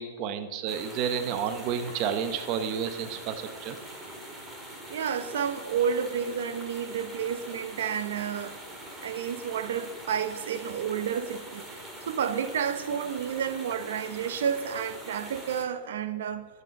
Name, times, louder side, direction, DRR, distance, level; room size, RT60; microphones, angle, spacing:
voice 1, 0.0-3.8, right 7 dB, 35° right, 0.8 m, -31 dB
sound 1, 0.7-15.7, right 1 dB, 10° right, 1.9 m, -43 dB
voice 2, 4.9-8.6 9.0-11.6 12.1-16.5, right 7 dB, 70° right, 0.9 m, -30 dB
13.5 x 8.2 x 6.5 m
supercardioid pair, 160°, 0 cm